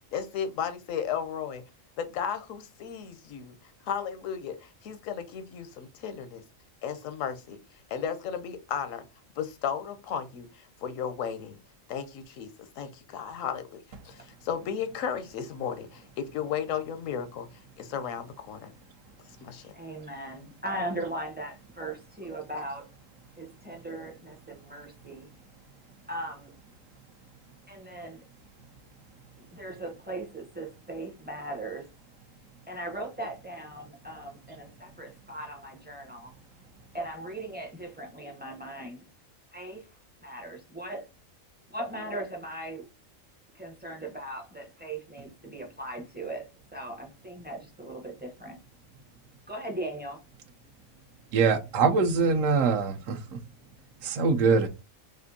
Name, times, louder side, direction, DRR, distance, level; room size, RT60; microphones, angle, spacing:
voice 1, 0.1-1.6 2.0-3.6 3.8-6.4 6.8-7.6 7.9-9.0 9.4-11.6 11.9-12.5 12.8-13.8 14.0-17.5 17.8-18.7 19.4-19.7, left 8 dB, 80° left, 1.0 m, -34 dB
voice 2, 19.8-22.8 23.4-25.3 26.1-26.5 27.7-28.2 29.5-31.9 32.7-36.3 36.9-39.0 39.5-39.8 40.2-41.0 41.7-42.8 43.6-46.4 46.7-48.6 49.5-50.2, right 1 dB, 15° right, 0.4 m, -38 dB
voice 3, 51.3-53.2 54.0-54.7, right 4 dB, 75° right, 1.0 m, -23 dB
4.3 x 2.5 x 2.6 m
omnidirectional pair, 1.4 m